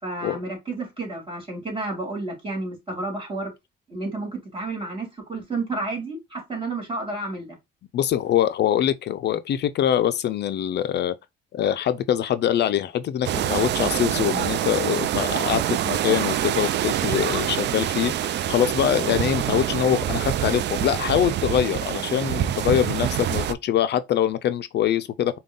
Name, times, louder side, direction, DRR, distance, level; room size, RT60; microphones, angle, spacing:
voice 1, 0.0-3.5 3.9-7.6, right 2 dB, 25° right, 2.4 m, -31 dB
voice 2, 7.9-11.1 11.5-25.4, left 10 dB, 60° left, 0.4 m, -24 dB
sound 1, 13.2-23.5, right 11 dB, 60° right, 0.4 m, -25 dB
5.2 x 2.3 x 3.7 m
cardioid pair, 90°, 20 cm